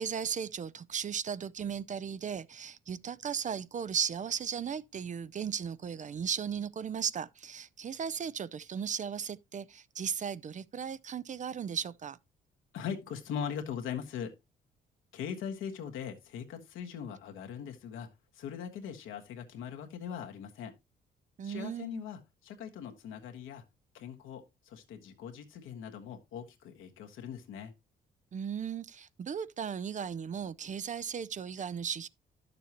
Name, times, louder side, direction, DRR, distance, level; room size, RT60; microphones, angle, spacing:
voice 1, 0.0-12.2 21.4-22.0 28.3-32.1, right 7 dB, 40° right, 0.5 m, -36 dB
voice 2, 12.7-14.3 15.1-18.1 18.3-20.7 21.4-23.7 23.9-27.7, left 7 dB, 85° left, 1.5 m, -40 dB
11.0 x 6.8 x 2.9 m
cardioid pair, 90°, 20 cm